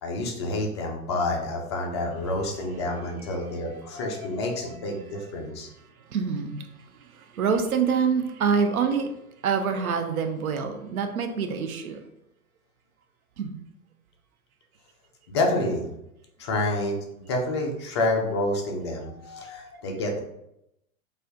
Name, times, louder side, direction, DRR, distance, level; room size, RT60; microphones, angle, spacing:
voice 1, 0.0-5.7 9.7-10.0 15.3-15.9 16.4-20.2, left 2 dB, 20° left, 1 dB, 0.3 m, -28 dB
voice 2, 6.1-6.6 7.4-9.1 9.4-12.0 13.4-13.6, right 6 dB, 70° right, 6 dB, 0.7 m, -25 dB
4.2 x 2.5 x 2.6 m, 0.82 s
figure-of-eight pair, 100°, 44 cm